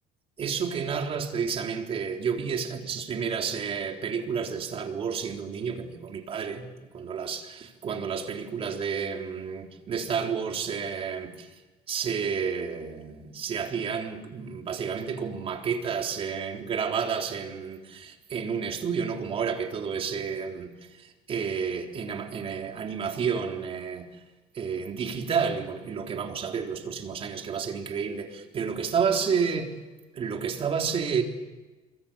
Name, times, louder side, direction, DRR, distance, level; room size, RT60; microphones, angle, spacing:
voice 1, 0.4-6.7 6.9-11.5 11.9-24.2 24.5-29.7 30.1-31.2, right 6 dB, 40° right, 3.9 m, -30 dB
27.0 x 23.5 x 8.8 m
cardioid pair, 120°, 15 cm